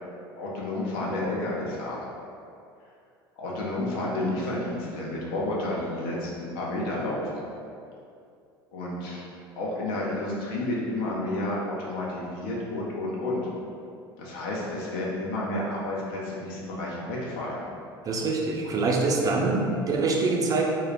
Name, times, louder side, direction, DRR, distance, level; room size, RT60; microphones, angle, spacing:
voice 1, 0.4-2.0 3.4-7.4 8.7-9.2 9.5-13.4 14.2-17.6 18.6-18.7, left 1 dB, 65° left, -4 dB, 0.6 m, -31 dB
voice 2, 18.0-20.6, right 3 dB, 30° right, -1 dB, 0.4 m, -25 dB
2.2 x 2.0 x 3.3 m, 2.5 s
hypercardioid pair, 70°, 12 cm